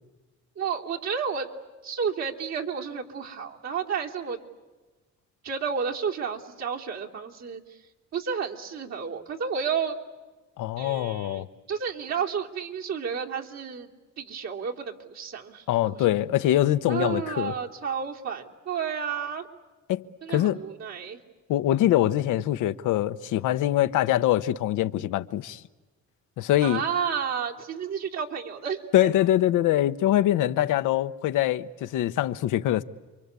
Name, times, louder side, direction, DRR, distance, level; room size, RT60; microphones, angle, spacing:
voice 1, 0.6-1.5 1.8-4.4 5.4-7.6 8.1-10.0 10.8-13.9 14.2-16.2 16.9-19.5 20.2-21.2 26.6-29.1, right 6 dB, 60° right, 3.3 m, -31 dB
voice 2, 10.6-11.5 15.7-17.5 19.9-20.6 21.5-25.6 26.4-26.8 28.9-32.8, left 13 dB, 90° left, 1.0 m, -24 dB
29.0 x 24.0 x 8.3 m
cardioid pair, 90°, 30 cm